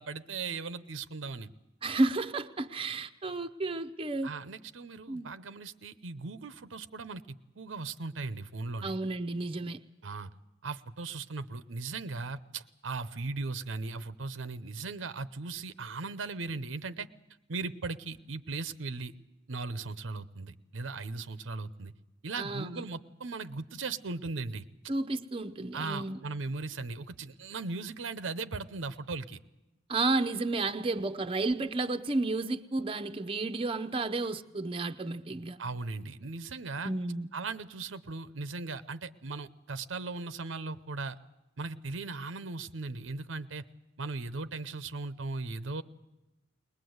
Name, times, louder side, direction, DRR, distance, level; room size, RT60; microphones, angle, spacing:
voice 1, 0.0-1.5 4.2-9.0 10.0-10.3 10.6-17.1 17.5-19.1 19.5-21.9 22.2-24.7 25.7-29.4 35.6-36.9 37.3-41.2 41.6-43.6 44.0-45.8, right 3 dB, 90° right, 0.8 m, -38 dB
voice 2, 1.8-4.3 5.1-5.3 8.8-9.8 22.4-22.9 24.9-26.2 29.9-35.6 36.8-37.3, right 2 dB, 30° right, 0.7 m, -32 dB
21.0 x 20.5 x 7.9 m
head